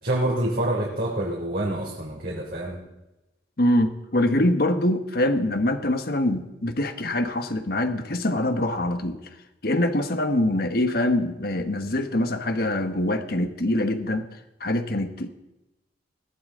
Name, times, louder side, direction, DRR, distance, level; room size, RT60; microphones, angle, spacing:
voice 1, 0.0-2.8, right 1 dB, 60° right, -4 dB, 3.3 m, -26 dB
voice 2, 3.6-9.2 9.6-14.3 14.6-15.3, left 1 dB, 60° left, 8 dB, 1.4 m, -24 dB
20.5 x 15.5 x 3.9 m, 0.97 s
head